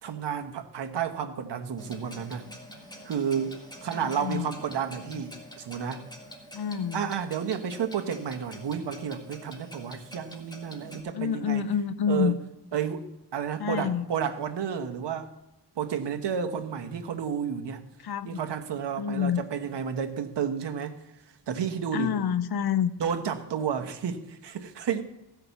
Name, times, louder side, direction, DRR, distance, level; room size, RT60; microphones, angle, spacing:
voice 1, 0.0-2.4 3.0-6.0 6.9-11.6 12.1-12.4 12.7-13.1 13.3-15.3 15.8-17.8 18.2-20.9 21.5-22.1 23.0-25.0, right 7 dB, 80° right, 1.2 m, -31 dB
Clock, 1.8-11.0, equal, 10° left, 1.7 m, -46 dB
voice 2, 3.9-4.5 5.1-5.2 6.5-7.1 11.1-12.4 13.6-14.1 18.0-18.4 19.0-19.4 21.9-22.9, left 8 dB, 65° left, 0.7 m, -28 dB
15.5 x 5.9 x 6.9 m
wide cardioid pair, 110°, 41 cm